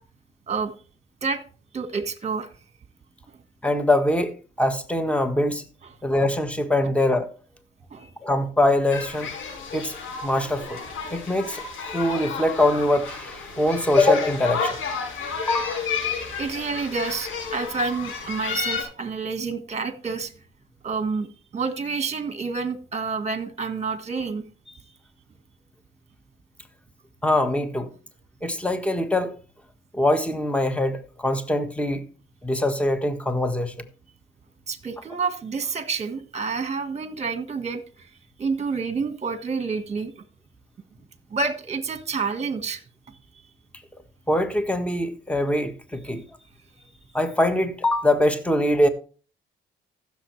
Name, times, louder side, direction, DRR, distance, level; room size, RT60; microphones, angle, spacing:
voice 1, 1.7-2.5 3.3-3.4 6.8-6.9 7.9-8.1 16.2-20.3 20.8-21.3 21.5-24.8 34.7-38.1 38.4-40.2 41.3-42.8, right 4 dB, 35° right, 1.5 m, -29 dB
voice 2, 3.6-5.6 6.0-7.3 8.2-9.3 9.7-10.0 10.2-10.8 11.1-11.6 11.9-14.8 15.5-15.8 27.2-27.9 28.4-29.3 29.9-32.0 32.4-33.7 44.3-46.2 47.1-48.9, left 1 dB, 5° left, 1.4 m, -23 dB
sound 1, 8.9-18.8, left 5 dB, 85° left, 5.5 m, -32 dB
15.0 x 7.1 x 3.2 m
cardioid pair, 90°, 20 cm